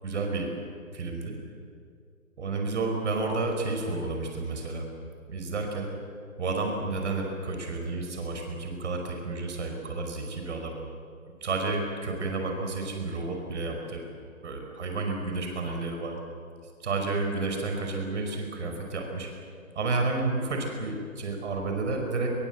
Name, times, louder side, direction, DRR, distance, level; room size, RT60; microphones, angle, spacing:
voice 1, 0.0-0.5 0.9-1.3 2.4-4.9 5.3-5.9 6.4-10.7 11.4-14.0 14.4-16.1 16.8-19.3 19.8-22.3, right 3 dB, 50° right, 3 dB, 5.2 m, -31 dB
25.0 x 21.5 x 8.2 m, 2.3 s
hypercardioid pair, 155°, 43 cm